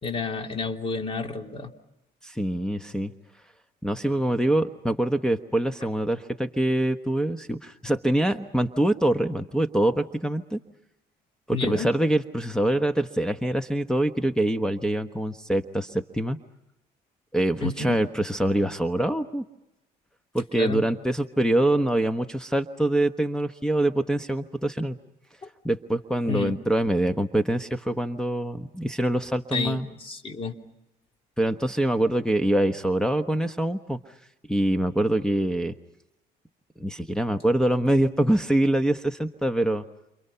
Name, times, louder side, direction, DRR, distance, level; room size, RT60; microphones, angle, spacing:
voice 1, 0.0-1.7 11.5-11.9 17.6-18.0 20.5-20.8 25.4-25.5 26.3-26.6 29.5-30.5, left 4 dB, 35° left, 3 dB, 3.3 m, -30 dB
voice 2, 2.2-3.1 3.8-10.6 11.5-16.4 17.3-19.4 20.3-25.0 25.6-29.9 31.4-34.0 34.5-35.7 36.8-39.8, right 1 dB, 5° left, 8 dB, 1.1 m, -24 dB
29.0 x 27.5 x 5.7 m, 0.90 s
cardioid pair, 110°, 17 cm